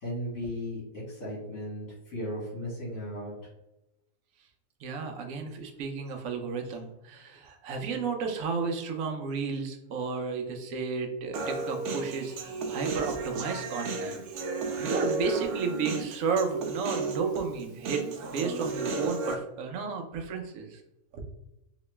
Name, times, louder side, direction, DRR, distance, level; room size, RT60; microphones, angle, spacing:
voice 1, 0.0-3.3, equal, 60° left, -6 dB, 1.7 m, -36 dB
voice 2, 4.8-14.2 14.8-20.8 21.1-21.2, right 5 dB, 65° right, 5 dB, 0.9 m, -33 dB
Human voice, 11.3-19.3, right 3 dB, 85° right, 1.1 m, -33 dB
3.0 x 2.9 x 3.2 m, 0.92 s
omnidirectional pair, 1.6 m